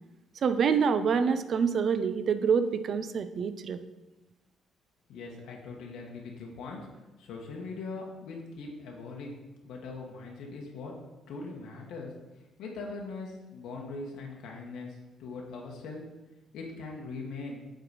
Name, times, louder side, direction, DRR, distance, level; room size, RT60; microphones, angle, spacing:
voice 1, 0.4-3.9, right 6 dB, 45° right, 11 dB, 0.4 m, -26 dB
voice 2, 5.1-6.9 7.2-9.4 9.6-10.9 11.3-12.1 12.6-16.0 16.5-17.6, left 3 dB, 90° left, -1 dB, 1.2 m, -41 dB
7.9 x 3.8 x 4.8 m, 1.1 s
cardioid pair, 145°, 0 cm